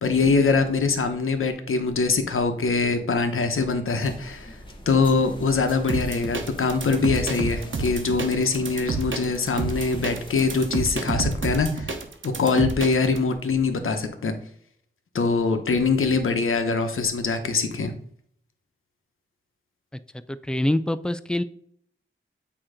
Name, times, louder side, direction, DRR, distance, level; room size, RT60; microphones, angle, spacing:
voice 1, 0.0-4.6 4.9-11.9 12.2-14.3 15.1-17.9, left 4 dB, 80° left, 7 dB, 0.9 m, -23 dB
sound 1, 4.0-11.0, left 1 dB, 25° left, 1.3 m, -43 dB
sound 2, 5.9-13.2, right 3 dB, 70° right, 1.0 m, -29 dB
voice 2, 20.3-21.4, left 1 dB, 5° left, 12 dB, 0.4 m, -25 dB
8.7 x 2.9 x 4.9 m, 0.64 s
wide cardioid pair, 120°, 21 cm